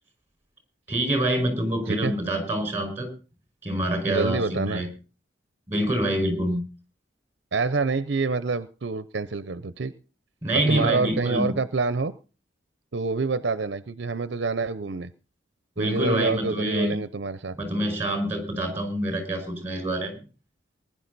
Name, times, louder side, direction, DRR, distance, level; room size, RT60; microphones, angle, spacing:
voice 1, 0.9-3.1 3.6-4.9 5.7-6.6 10.4-11.6 15.8-16.9 17.5-20.2, right 1 dB, 15° right, 5 dB, 5.3 m, -26 dB
voice 2, 4.0-4.9 7.5-9.9 10.5-12.1 12.9-15.1 15.8-17.6, right 4 dB, 65° right, 14 dB, 0.6 m, -27 dB
20.5 x 11.0 x 4.1 m, 0.34 s
head